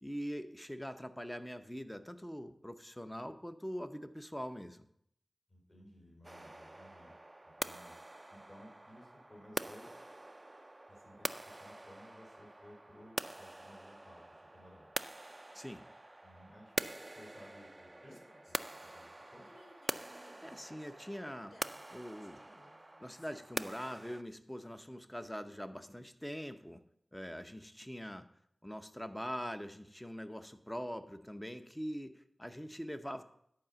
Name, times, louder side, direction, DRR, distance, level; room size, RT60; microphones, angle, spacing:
voice 1, 0.0-4.8 15.5-15.8 20.2-21.6 21.9-22.4 23.0-26.8 27.1-28.3 28.6-33.2, equal, 10° left, 9 dB, 0.7 m, -43 dB
voice 2, 5.5-7.1 7.6-7.9 8.3-9.9 10.9-14.2 14.5-14.9 16.2-16.7 17.1-18.2 18.5-19.5, equal, 40° left, -2 dB, 4.3 m, -57 dB
sound 1, 6.2-24.2, right 1 dB, 25° right, 0.3 m, -45 dB
sound 2, 17.9-23.9, left 1 dB, 85° left, 2.0 m, -63 dB
10.5 x 4.9 x 6.8 m, 0.72 s
wide cardioid pair, 85°, 0 cm